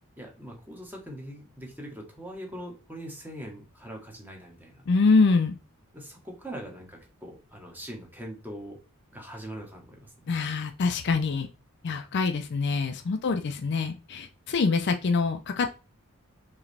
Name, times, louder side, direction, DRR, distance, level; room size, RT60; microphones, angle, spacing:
voice 1, 0.2-4.9 5.9-8.8 9.1-10.3 13.3-13.4, equal, 10° right, 0 dB, 1.1 m, -42 dB
voice 2, 4.9-5.6 10.3-11.5 11.8-15.8, left 4 dB, 50° left, 6 dB, 0.4 m, -25 dB
4.8 x 3.1 x 3.3 m, 0.31 s
head